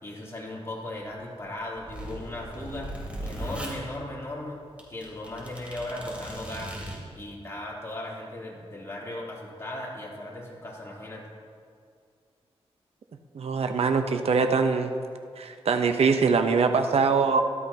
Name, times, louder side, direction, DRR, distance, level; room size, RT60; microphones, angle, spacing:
voice 1, 0.0-4.6 4.9-6.7 7.1-11.3, left 1 dB, 25° left, -5 dB, 3.2 m, -37 dB
sound 1, 1.5-3.7 4.4-4.5 4.8-7.0, right 1 dB, 10° right, 2.8 m, -38 dB
voice 2, 13.3-14.9 15.4-17.4, right 5 dB, 70° right, 6 dB, 0.8 m, -23 dB
13.5 x 12.0 x 2.9 m, 2.2 s
cardioid pair, 70°, 11 cm